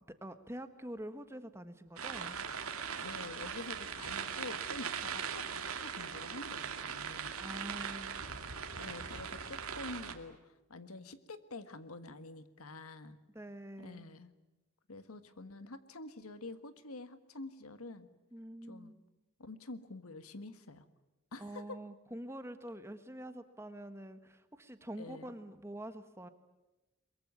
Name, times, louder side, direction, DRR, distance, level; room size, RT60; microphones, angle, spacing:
voice 1, 0.1-2.4 7.4-8.2 13.3-14.0 18.3-19.0 21.4-26.3, right 1 dB, 10° right, 10 dB, 1.3 m, -46 dB
sound 1, 2.0-10.1, right 6 dB, 85° right, 2.3 m, -40 dB
voice 2, 3.0-7.3 8.8-13.2 13.8-14.3 14.9-18.1 18.7-18.9 19.4-20.9 21.3-21.8 25.0-25.3, left 2 dB, 85° left, 11 dB, 1.6 m, -47 dB
23.0 x 22.5 x 9.5 m, 1.0 s
head